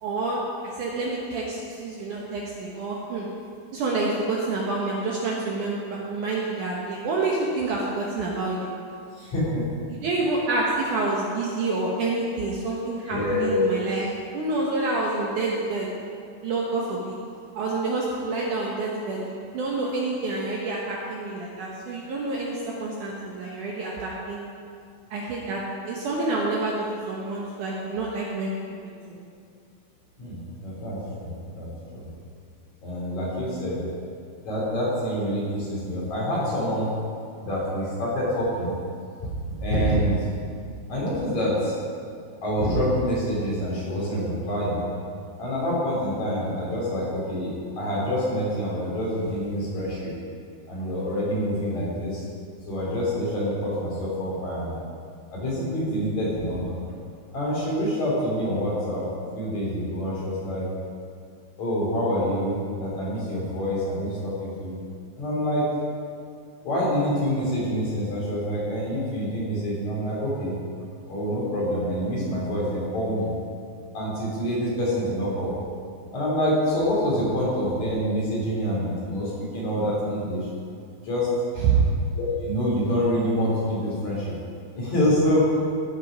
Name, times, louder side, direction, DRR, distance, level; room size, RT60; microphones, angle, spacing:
voice 1, 0.0-3.3 3.7-8.7 9.9-14.1 14.3-15.9 16.4-17.1 17.6-24.4 25.1-28.5 29.1-29.2 81.6-81.8, right 3 dB, 65° right, -3 dB, 2.2 m, -28 dB
voice 2, 9.1-9.6 13.1-13.8 30.2-32.1 32.8-33.8 34.5-36.9 37.4-38.7 39.6-40.3 40.9-41.8 42.4-44.9 45.4-50.1 50.7-52.2 52.7-54.8 55.3-56.8 57.3-59.0 59.3-60.7 61.6-64.8 65.2-65.6 66.6-70.6 71.1-73.3 73.9-75.5 76.1-80.5 81.0-81.3 82.2-84.3 84.8-85.4, equal, 50° left, -6 dB, 4.1 m, -26 dB
15.5 x 6.4 x 5.1 m, 2.3 s
omnidirectional pair, 4.5 m